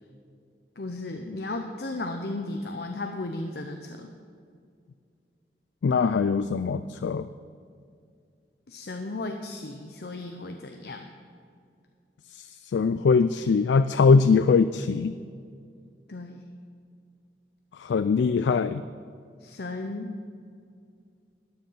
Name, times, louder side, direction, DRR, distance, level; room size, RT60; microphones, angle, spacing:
voice 1, 0.8-4.1 8.7-11.1 16.1-16.4 19.4-20.1, left 2 dB, 65° left, 4 dB, 0.7 m, -35 dB
voice 2, 5.8-7.3 12.3-15.1 17.8-18.8, left 5 dB, 85° left, 12 dB, 0.3 m, -22 dB
13.0 x 9.2 x 5.7 m, 2.3 s
head